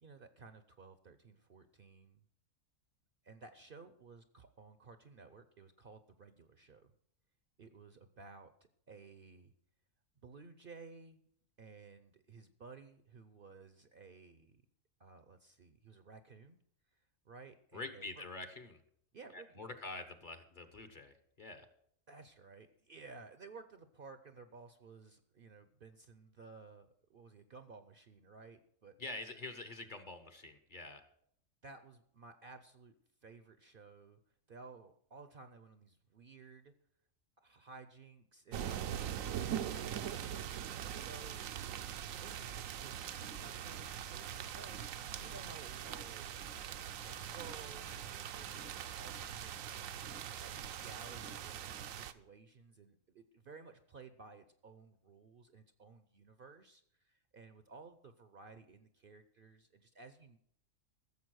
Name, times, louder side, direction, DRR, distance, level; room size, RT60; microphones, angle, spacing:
voice 1, 0.0-2.2 3.2-6.9 7.6-8.5 8.9-9.5 10.2-11.2 11.6-14.6 15.0-16.6 16.9-18.2 19.1-19.7 22.1-29.0 31.6-32.9 33.2-34.2 34.5-36.7 37.4-40.2 40.8-41.5 42.2-43.1 43.4-60.4, right 4 dB, 50° right, 10 dB, 0.8 m, -56 dB
voice 2, 17.7-18.8 19.3-21.7 29.0-31.1, left 2 dB, 40° left, 8 dB, 1.1 m, -46 dB
sound 1, 38.5-52.1, right 10 dB, 75° right, 1.0 m, -42 dB
sound 2, 43.0-51.8, equal, 70° left, 4.2 m, -58 dB
15.0 x 7.1 x 6.2 m, 0.68 s
omnidirectional pair, 1.4 m